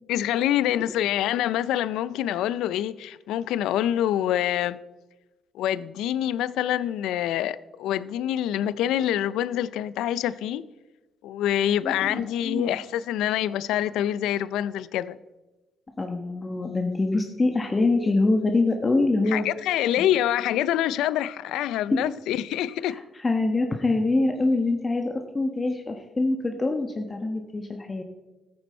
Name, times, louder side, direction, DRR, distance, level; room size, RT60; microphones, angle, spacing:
voice 1, 0.1-4.8 5.5-10.6 11.2-15.2 19.3-23.0, left 11 dB, 90° left, 0.4 m, -26 dB
voice 2, 11.8-12.7 16.0-19.4 21.9-22.0 22.9-28.0, left 2 dB, 25° left, 1.1 m, -25 dB
14.0 x 8.5 x 4.3 m
cardioid pair, 90°, 0 cm